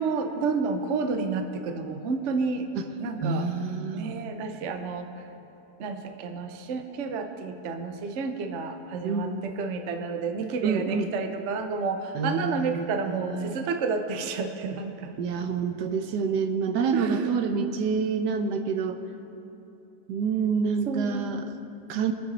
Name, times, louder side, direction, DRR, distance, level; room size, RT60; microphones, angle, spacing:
voice 1, 0.0-2.7 3.0-3.5 3.9-5.1 5.8-15.2 16.9-17.3 20.9-21.3 21.7-22.0, right 4 dB, 55° right, 6 dB, 0.9 m, -30 dB
voice 2, 3.2-4.2 9.0-9.5 10.6-11.1 12.1-13.5 15.2-19.0 20.1-21.5 21.9-22.1, right 5 dB, 75° right, 8 dB, 1.4 m, -27 dB
23.0 x 8.8 x 4.0 m, 3.0 s
omnidirectional pair, 1.8 m